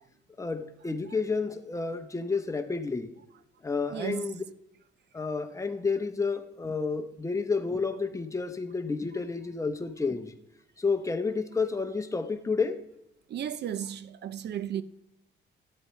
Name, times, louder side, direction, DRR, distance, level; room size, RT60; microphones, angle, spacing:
voice 1, 0.4-3.1 3.6-4.4 5.1-10.3 10.8-12.8, left 4 dB, 15° left, 0.9 m, -30 dB
voice 2, 3.9-4.2 13.3-14.8, right 10 dB, 60° right, 0.5 m, -34 dB
12.5 x 7.9 x 3.2 m
cardioid pair, 90°, 20 cm